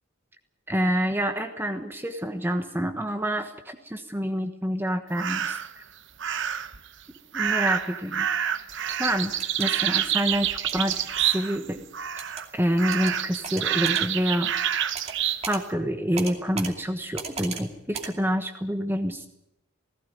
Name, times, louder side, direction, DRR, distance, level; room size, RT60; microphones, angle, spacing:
voice 1, 0.7-5.6 7.3-8.3 9.0-9.3 9.6-11.8 12.5-14.5 15.5-19.3, equal, 10° right, 6 dB, 1.2 m, -27 dB
sound 1, 5.2-5.7 6.2-6.8 7.3-11.7 11.9-12.5 12.8-15.4, right 9 dB, 60° right, 1.0 m, -27 dB
sound 2, 9.4-9.7 10.7-11.0 12.2-12.4 12.9-13.1 13.4-14.0 14.9-15.2 15.4-15.6 16.2-16.7 17.2-17.6 17.9-18.1, right 5 dB, 30° right, 2.5 m, -36 dB
18.0 x 16.0 x 9.4 m, 0.85 s
head